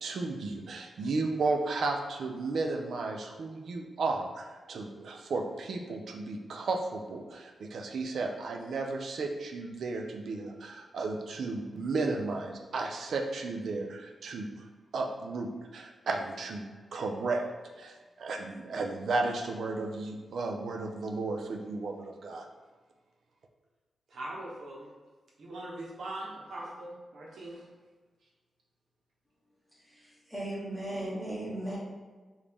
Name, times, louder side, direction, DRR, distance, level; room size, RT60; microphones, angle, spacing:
voice 1, 0.0-14.5 14.9-17.4 17.8-22.5, right 3 dB, 70° right, 3 dB, 0.5 m, -34 dB
voice 2, 24.1-24.9 25.4-27.6, right 1 dB, 90° right, -3 dB, 1.1 m, -41 dB
voice 3, 29.7-31.8, right 1 dB, 5° right, -6 dB, 1.1 m, -37 dB
5.0 x 2.7 x 3.4 m, 1.3 s
wide cardioid pair, 165°, 0 cm